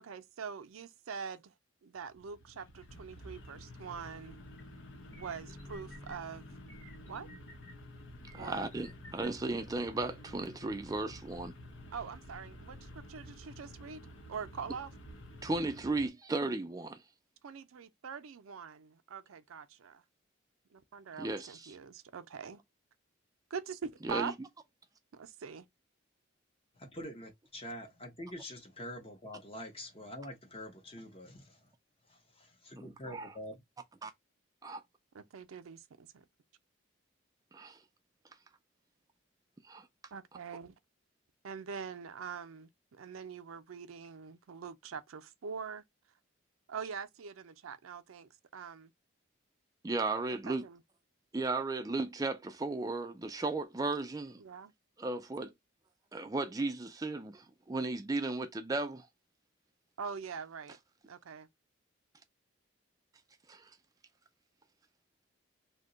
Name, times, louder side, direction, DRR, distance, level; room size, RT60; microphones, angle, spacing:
voice 1, 0.0-1.5 1.8-4.4 5.1-6.5 7.1-7.3 8.4-8.7 11.9-14.0 14.3-14.9 17.4-20.0 20.7-22.6 23.5-24.3 25.1-25.6 35.1-36.2 40.1-40.7 41.4-45.8 46.7-48.9 50.3-50.8 54.4-54.7 60.0-60.8 61.0-61.5, right 6 dB, 90° right, 0.5 m, -43 dB
sound 1, 1.9-16.1, left 1 dB, 75° left, 0.9 m, -51 dB
sound 2, 4.6-4.7 5.1-6.2 6.7-7.7 8.2-9.3, equal, 10° left, 1.0 m, -53 dB
voice 2, 8.3-11.5 15.4-17.0 21.2-21.7 24.0-24.3 32.8-33.3 34.0-34.1 34.6-34.8 37.5-37.8 39.7-39.9 49.8-50.6 51.3-54.4 55.0-55.5 56.1-59.1 63.5-63.7, right 3 dB, 15° right, 0.3 m, -35 dB
voice 3, 26.8-31.7 32.1-33.6, left 1 dB, 25° left, 0.7 m, -46 dB
2.7 x 2.2 x 3.8 m
head